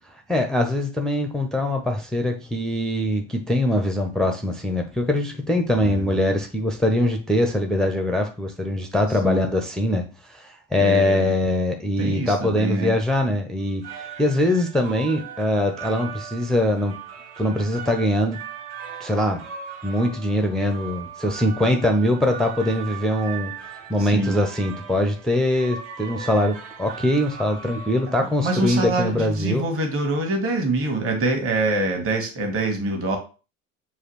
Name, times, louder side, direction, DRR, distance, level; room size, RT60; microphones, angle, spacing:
voice 1, 0.3-17.0 17.4-18.4 19.0-19.4 19.8-23.5 23.9-29.6, left 1 dB, ahead, 4 dB, 0.4 m, -22 dB
voice 2, 5.8-6.2 9.2-9.4 10.8-11.3 12.0-12.9 24.0-24.4 28.4-33.2, right 2 dB, 35° right, 4 dB, 1.3 m, -25 dB
sound 1, 13.6-29.5, right 7 dB, 60° right, 0.8 m, -39 dB
6.3 x 2.4 x 3.0 m, 0.34 s
figure-of-eight pair, 70°, 39 cm